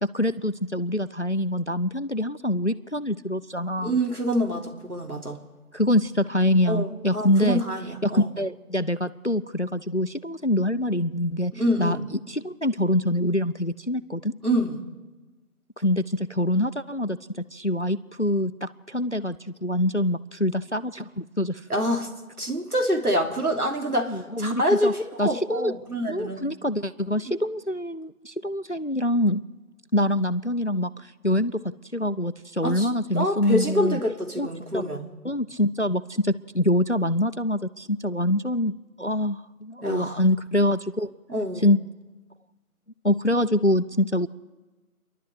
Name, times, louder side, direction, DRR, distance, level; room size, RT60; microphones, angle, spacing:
voice 1, 0.0-4.0 5.7-7.6 8.0-11.5 11.8-14.3 15.8-21.7 24.1-24.9 25.2-25.7 26.1-29.4 29.9-34.0 34.4-34.5 34.7-34.8 35.2-38.7 39.0-41.1 41.6-41.8 43.0-44.3, left 1 dB, 50° left, 12 dB, 0.6 m, -25 dB
voice 2, 3.8-5.4 6.7-8.3 11.5-12.0 14.4-14.8 21.7-22.1 22.4-26.4 32.6-32.9 33.1-35.1 39.8-40.2 41.3-41.7, equal, 80° right, 2 dB, 3.3 m, -26 dB
29.0 x 12.0 x 8.0 m, 1.2 s
figure-of-eight pair, 180°, 44 cm